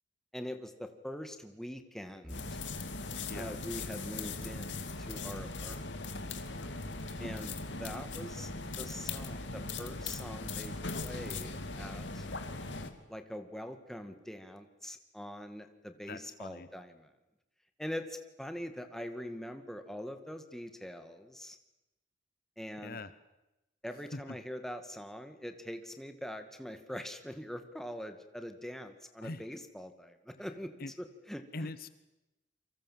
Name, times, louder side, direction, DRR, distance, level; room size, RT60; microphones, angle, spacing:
voice 1, 0.3-2.5 3.3-5.8 7.2-8.5 8.8-10.7 11.0-12.3 13.1-17.1 17.8-21.6 22.6-23.0 23.8-31.7, equal, ahead, 7 dB, 2.1 m, -43 dB
sound 1, 2.3-12.9, left 3 dB, 70° left, 2.6 m, -39 dB
voice 2, 3.3-3.6 16.1-16.7 22.8-23.1 24.1-24.4 29.2-29.5 30.8-30.9 31.5-31.9, left 2 dB, 50° left, 14 dB, 1.0 m, -42 dB
28.5 x 24.5 x 7.6 m, 0.97 s
head